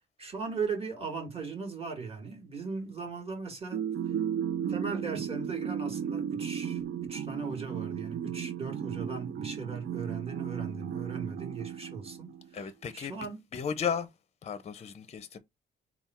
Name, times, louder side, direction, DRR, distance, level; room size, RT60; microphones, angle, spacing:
voice 1, 0.2-3.9 4.7-12.3 12.9-13.4, right 4 dB, 30° right, 1.8 m, -38 dB
sound 1, 3.7-12.5, right 8 dB, 55° right, 0.6 m, -35 dB
voice 2, 12.5-13.1 13.5-14.1 14.4-15.4, left 7 dB, 35° left, 0.6 m, -34 dB
3.6 x 2.3 x 4.2 m
cardioid pair, 90°, 20 cm